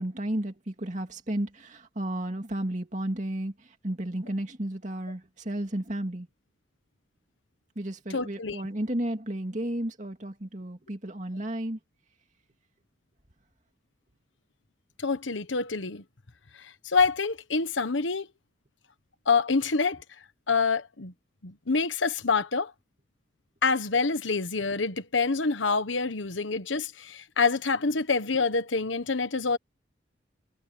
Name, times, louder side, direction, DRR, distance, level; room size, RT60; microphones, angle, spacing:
voice 1, 0.0-6.3 7.8-11.8, right 1 dB, 40° right, 2.6 m, -33 dB
voice 2, 8.1-8.6 15.0-16.0 16.6-18.3 19.3-20.0 20.5-21.1 21.4-22.7 23.6-29.6, left 4 dB, 80° left, 1.3 m, -26 dB
head